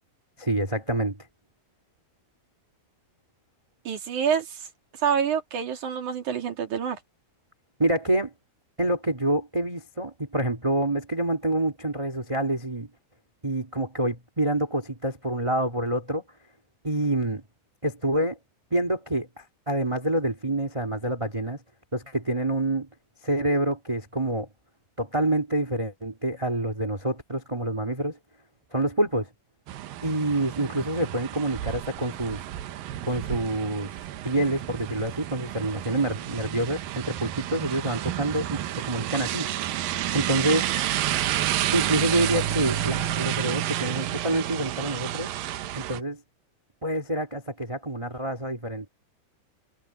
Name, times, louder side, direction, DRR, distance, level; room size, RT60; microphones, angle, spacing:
voice 1, 0.4-1.2 7.8-8.3 8.8-12.9 13.4-16.2 16.8-17.4 17.8-18.4 18.7-19.3 19.7-21.6 21.9-22.9 23.2-24.5 25.0-28.2 28.7-29.3 30.0-32.4 33.1-33.9 34.2-39.5 40.1-40.7 41.7-45.3 45.7-46.2 46.8-48.9, right 1 dB, 10° right, 1.8 m, -27 dB
voice 2, 3.8-4.7 5.0-7.0, right 7 dB, 55° right, 3.4 m, -27 dB
sound 1, 29.7-46.0, right 12 dB, 70° right, 2.5 m, -30 dB
omnidirectional pair, 4.7 m